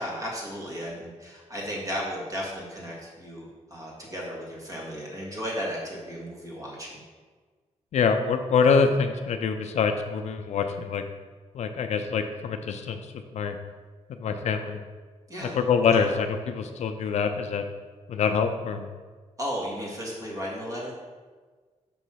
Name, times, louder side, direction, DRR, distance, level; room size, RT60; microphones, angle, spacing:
voice 1, 0.0-7.0 15.3-15.6 15.9-16.1 19.4-20.9, equal, 25° right, -3 dB, 1.6 m, -34 dB
voice 2, 7.9-11.0 11.5-13.0 13.3-13.6 14.2-14.8 15.4-17.6 18.1-18.9, left 5 dB, 65° left, 6 dB, 0.5 m, -25 dB
6.2 x 3.1 x 5.6 m, 1.4 s
cardioid pair, 125°, 12 cm